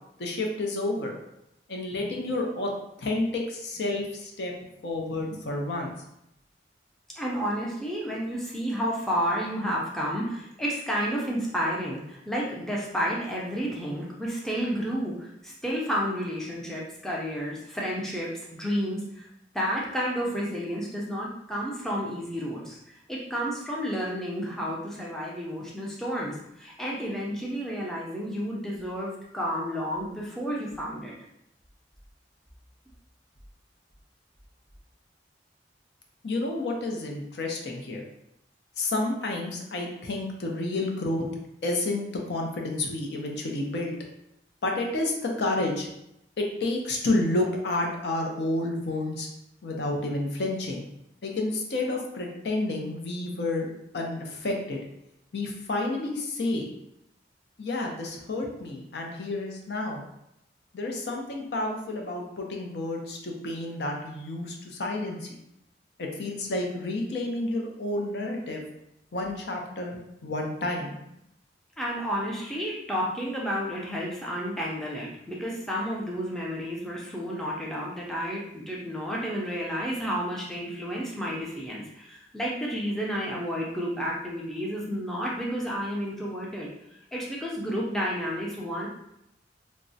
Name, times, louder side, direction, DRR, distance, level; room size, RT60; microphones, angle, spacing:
voice 1, 0.2-1.2 1.7-2.7 3.0-4.6 4.8-5.9 36.2-38.0 38.8-41.3 41.6-43.9 44.6-45.9 46.4-49.3 49.6-50.9 51.2-54.8 55.3-56.7 57.6-60.0 60.7-65.4 66.0-68.6 69.1-70.9, left 2 dB, 70° left, 1 dB, 0.5 m, -30 dB
voice 2, 7.2-19.3 19.5-31.1 71.8-86.7 87.1-88.9, equal, ahead, -4 dB, 0.4 m, -31 dB
3.4 x 2.0 x 2.6 m, 0.81 s
head